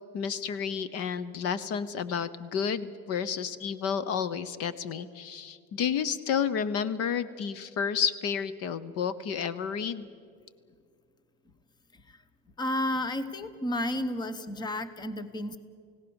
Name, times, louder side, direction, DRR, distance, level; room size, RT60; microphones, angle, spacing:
voice 1, 0.1-10.1, left 7 dB, 50° left, 16 dB, 1.0 m, -31 dB
voice 2, 12.6-15.6, left 1 dB, 15° left, 13 dB, 1.0 m, -32 dB
29.5 x 17.0 x 7.1 m, 2.2 s
cardioid pair, 150°, 31 cm